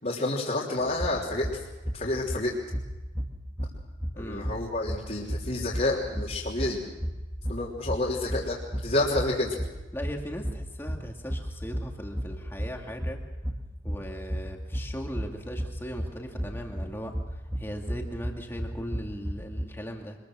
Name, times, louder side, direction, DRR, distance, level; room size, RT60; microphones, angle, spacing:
voice 1, 0.0-1.6 1.9-2.5 4.2-6.8 7.5-9.5, left 2 dB, 40° left, -6 dB, 3.5 m, -29 dB
sound 1, 0.8-19.7, equal, 10° right, 1.8 m, -35 dB
voice 2, 4.2-4.5 9.9-13.2 13.8-20.2, equal, 10° left, 1 dB, 2.5 m, -38 dB
25.5 x 21.5 x 6.3 m, 1.1 s
head